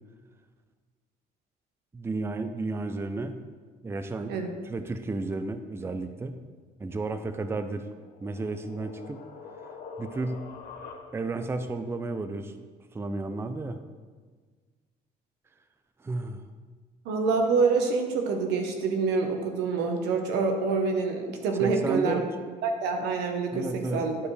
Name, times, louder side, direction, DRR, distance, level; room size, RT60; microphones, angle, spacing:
voice 1, 1.9-3.4 3.8-4.4 4.7-6.4 6.8-7.9 8.2-9.2 10.0-10.4 11.1-12.6 12.9-13.8 16.0-16.4 21.6-22.2 23.5-24.0, right 3 dB, 15° right, 9 dB, 0.4 m, -32 dB
sound 1, 7.8-11.5, left 4 dB, 65° left, 1.0 m, -45 dB
voice 2, 17.0-22.2 22.6-24.2, right 4 dB, 90° right, 4 dB, 1.1 m, -26 dB
11.0 x 4.9 x 3.3 m, 1.5 s
cardioid pair, 110°, 17 cm